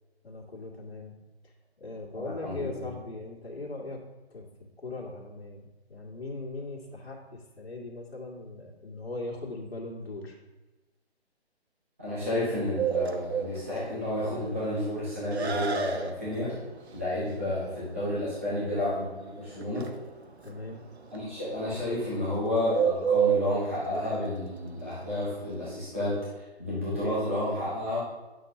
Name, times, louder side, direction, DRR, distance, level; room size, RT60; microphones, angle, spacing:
voice 1, 0.2-1.1 1.8-4.0 4.3-4.4 4.8-10.4 17.2-17.3 20.4-20.8, left 2 dB, 65° left, -2 dB, 1.9 m, -39 dB
voice 2, 2.1-2.9 12.0-16.5 16.9-19.9 21.1-28.0, left 1 dB, 10° right, -10 dB, 0.9 m, -31 dB
Bird, 12.8-25.8, right 8 dB, 75° right, 0.9 m, -32 dB
9.6 x 6.2 x 2.7 m, 1.1 s
hypercardioid pair, 180°, 33 cm